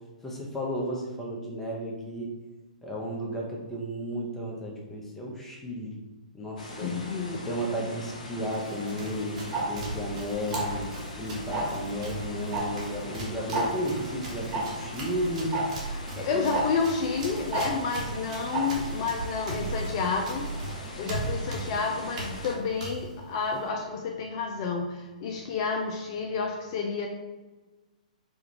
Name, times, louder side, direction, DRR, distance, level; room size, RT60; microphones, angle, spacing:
voice 1, 0.2-2.3 2.8-6.0 6.3-6.9 7.3-9.4 9.7-10.9 11.2-15.5 16.2-16.5, equal, 10° left, -3 dB, 0.8 m, -33 dB
sound 1, 6.6-22.6, left 1 dB, 70° left, 0.9 m, -41 dB
voice 2, 6.8-7.4 15.9-27.1, left 5 dB, 45° left, 1 dB, 0.4 m, -30 dB
Run, 8.4-23.7, right 2 dB, 60° right, 1.3 m, -38 dB
Tick-tock, 9.5-9.6 10.5-10.8 11.5-11.8 12.5-12.6 12.9-13.0 13.5-13.7 14.5-14.6 15.5-15.6 16.5-16.6 17.5-17.6 18.5-18.6, right 4 dB, 25° right, 1.3 m, -28 dB
5.0 x 2.4 x 2.9 m, 1.2 s
hypercardioid pair, 120°, 4 cm